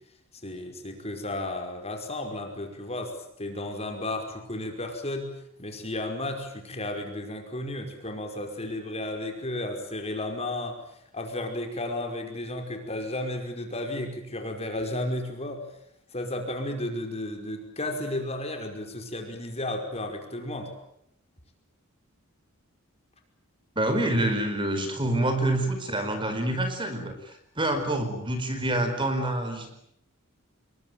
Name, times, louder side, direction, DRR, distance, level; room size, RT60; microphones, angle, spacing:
voice 1, 0.4-5.3 5.6-10.8 11.1-15.7 16.1-20.7, left 1 dB, 30° left, 4 dB, 5.3 m, -33 dB
voice 2, 23.7-29.8, right 1 dB, 25° right, 7 dB, 4.8 m, -27 dB
27.5 x 22.5 x 9.4 m, 0.73 s
head